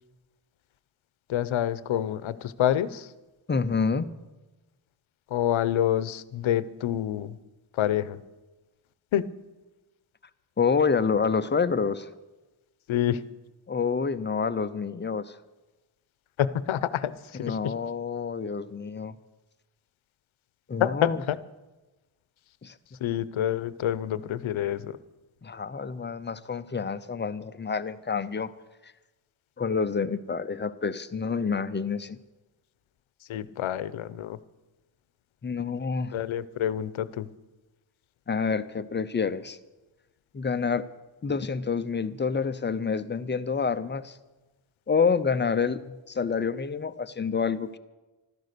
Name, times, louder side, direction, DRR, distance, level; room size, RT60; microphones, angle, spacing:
voice 1, 1.3-3.1 5.3-7.4 7.8-8.2 9.1-9.2 12.9-13.2 16.4-17.7 20.8-21.4 23.0-25.0 33.3-34.4 36.1-37.3, left 11 dB, 80° left, 16 dB, 0.8 m, -27 dB
voice 2, 3.5-4.1 10.6-12.1 13.7-15.4 17.4-19.2 20.7-21.2 22.6-22.8 25.4-28.5 28.8-28.9 29.6-32.2 35.4-36.1 38.3-39.6 40.3-40.8 41.2-44.2 44.9-47.8, left 5 dB, 25° left, 13 dB, 0.5 m, -28 dB
15.0 x 13.0 x 6.7 m, 1.1 s
wide cardioid pair, 175°, 47 cm